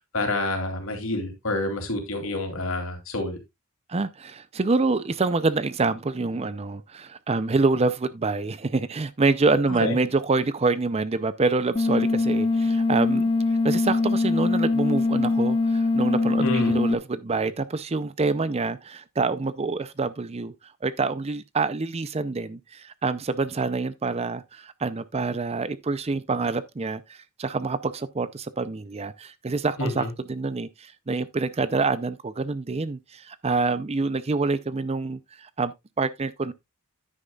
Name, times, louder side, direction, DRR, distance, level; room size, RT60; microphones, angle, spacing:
voice 1, 0.1-3.4 9.8-10.0 16.4-16.7 29.8-30.1, left 2 dB, 65° left, 2.9 m, -28 dB
voice 2, 3.9-13.2 13.6-20.5 20.8-36.5, right 3 dB, 30° right, 0.5 m, -26 dB
sound 1, 11.8-16.9, left 3 dB, 20° left, 0.6 m, -22 dB
10.0 x 9.2 x 2.3 m
head